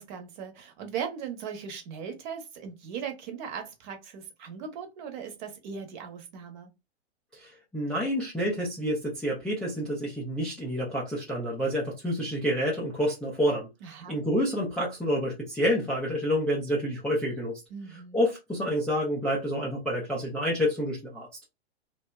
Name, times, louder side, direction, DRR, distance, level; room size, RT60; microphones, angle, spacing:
voice 1, 0.0-6.7 13.8-14.2 17.7-18.2, right 7 dB, 45° right, 0.8 m, -38 dB
voice 2, 7.3-13.7 14.1-17.6 18.1-21.3, equal, 5° left, 0.3 m, -28 dB
2.7 x 2.1 x 2.2 m
hypercardioid pair, 125°, 33 cm